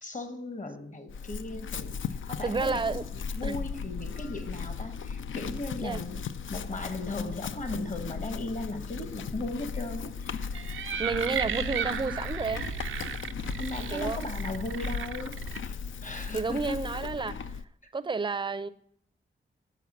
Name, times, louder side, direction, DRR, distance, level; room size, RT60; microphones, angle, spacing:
voice 1, 0.0-2.0 2.3-2.8 3.1-10.4 13.6-16.8 17.8-17.9, left 2 dB, 40° left, 9 dB, 1.2 m, -37 dB
Chewing mastication / Livestock farm animals working animals, 1.1-17.6, left 6 dB, 75° left, 0.4 m, -37 dB
voice 2, 2.4-3.0 3.4-3.6 5.8-6.0 11.0-12.6 13.9-14.2 16.3-17.6 17.9-18.7, right 4 dB, 25° right, 12 dB, 0.5 m, -31 dB
sound 1, 10.4-15.6, right 8 dB, 85° right, 0.4 m, -35 dB
7.2 x 4.6 x 7.0 m, 0.66 s
cardioid pair, 55°, 20 cm